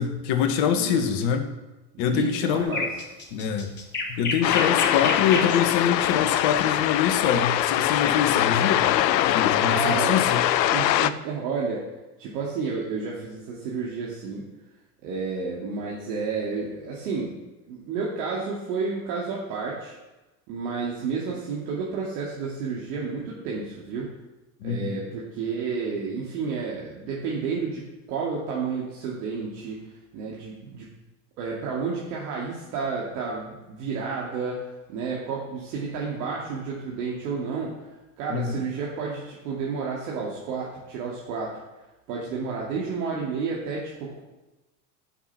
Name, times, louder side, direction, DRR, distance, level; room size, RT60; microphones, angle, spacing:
voice 1, 0.0-1.5 2.0-2.8 3.3-3.7 4.1-8.9 9.3-10.4 24.6-25.0 38.3-38.5, left 8 dB, 55° left, 6 dB, 1.7 m, -25 dB
voice 2, 0.8-1.2 1.9-2.9 9.5-10.3 10.7-11.8 12.2-14.5 15.0-17.3 17.7-19.9 20.5-24.1 24.6-29.8 30.1-30.9 31.4-34.6 34.9-37.8 38.2-41.6 42.1-44.2, right 5 dB, 70° right, -4 dB, 2.4 m, -31 dB
sound 1, 2.6-5.6 7.6-7.9, left 3 dB, 20° left, 2.7 m, -29 dB
sound 2, 4.4-11.1, left 13 dB, 85° left, 0.7 m, -23 dB
11.0 x 6.1 x 5.8 m, 1.1 s
hypercardioid pair, 95°, 49 cm